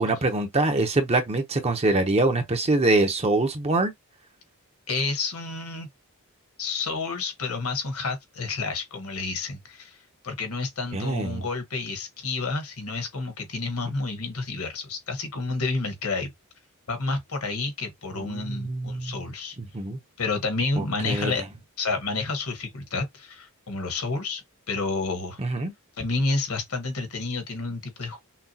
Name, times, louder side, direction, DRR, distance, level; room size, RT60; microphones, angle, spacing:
voice 1, 0.0-3.9 10.9-11.5 18.2-19.2 19.6-20.0 20.8-21.3 25.4-25.7, right 2 dB, 30° right, 0.8 m, -24 dB
voice 2, 4.9-5.9 6.6-10.0 10.2-16.3 16.9-19.6 20.2-21.4 21.8-25.4 26.0-28.2, left 3 dB, 70° left, 1.3 m, -30 dB
5.9 x 2.3 x 2.8 m
head